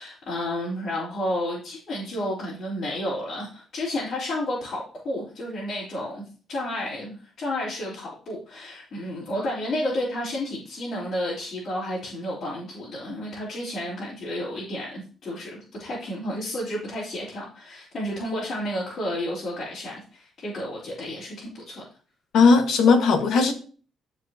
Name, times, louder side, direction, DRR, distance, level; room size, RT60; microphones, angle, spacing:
voice 1, 0.0-21.8, left 1 dB, 55° left, 3.9 m, -31 dB
voice 2, 22.3-23.5, left 4 dB, 75° left, 1.6 m, -17 dB
12.5 x 4.8 x 2.9 m
cardioid pair, 90°, 0 cm